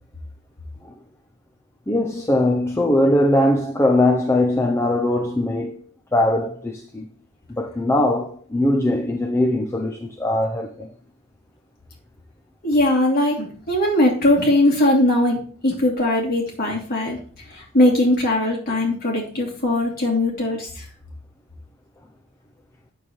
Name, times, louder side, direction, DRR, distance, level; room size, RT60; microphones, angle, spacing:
voice 1, 1.9-5.8 6.1-7.1 7.6-10.9, left 1 dB, 10° left, 0.5 m, -20 dB
voice 2, 12.6-17.2 17.5-20.8, left 1 dB, 40° left, 2.8 m, -20 dB
8.6 x 7.1 x 3.1 m
head